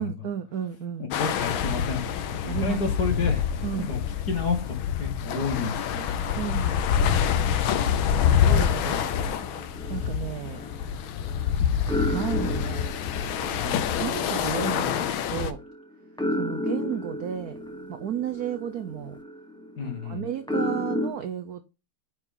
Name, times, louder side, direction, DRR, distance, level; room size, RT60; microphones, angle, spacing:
voice 1, 0.0-1.1 2.5-2.8 3.6-3.9 6.4-6.8 8.2-9.0 9.9-10.6 12.1-12.9 13.2-15.6 16.4-17.6 17.9-19.1 20.0-21.6, right 9 dB, 70° right, 0.9 m, -33 dB
voice 2, 1.0-3.5 3.9-4.0 4.3-6.2 13.5-14.0 19.8-20.3, left 5 dB, 50° left, 2.1 m, -30 dB
sound 1, 1.1-15.5, left 8 dB, 75° left, 1.5 m, -26 dB
sound 2, 8.9-11.5 11.9-21.1, left 1 dB, 5° left, 0.5 m, -33 dB
10.0 x 4.7 x 3.8 m
omnidirectional pair, 2.4 m